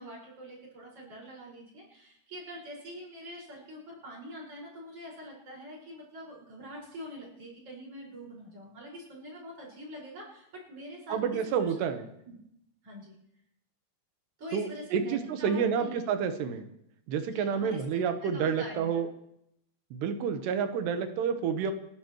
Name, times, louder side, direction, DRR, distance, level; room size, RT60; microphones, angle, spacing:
voice 1, 0.0-11.2 11.6-11.9 12.3-12.4 12.8-13.1 14.4-16.1 17.3-19.0, equal, 35° right, -3 dB, 6.2 m, -44 dB
voice 2, 11.1-12.1 14.5-16.7 17.1-19.1 19.9-21.7, right 7 dB, 85° right, 8 dB, 3.2 m, -29 dB
29.5 x 12.0 x 3.1 m, 0.78 s
omnidirectional pair, 4.7 m